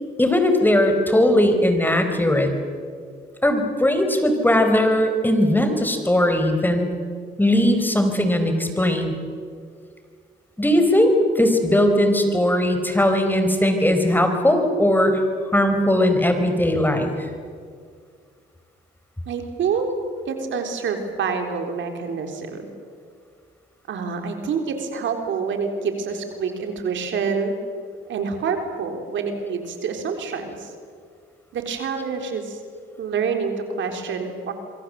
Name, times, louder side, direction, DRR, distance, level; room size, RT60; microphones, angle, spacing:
voice 1, 0.2-2.5 3.4-6.9 7.4-9.2 10.6-15.3 15.5-17.3, left 1 dB, 10° left, 6 dB, 4.2 m, -19 dB
voice 2, 19.3-19.9 20.3-22.7 23.9-27.6 28.1-30.7 31.5-32.6 33.0-34.5, right 5 dB, 70° right, 5 dB, 3.8 m, -27 dB
26.5 x 23.5 x 7.7 m, 2.1 s
cardioid pair, 90°, 20 cm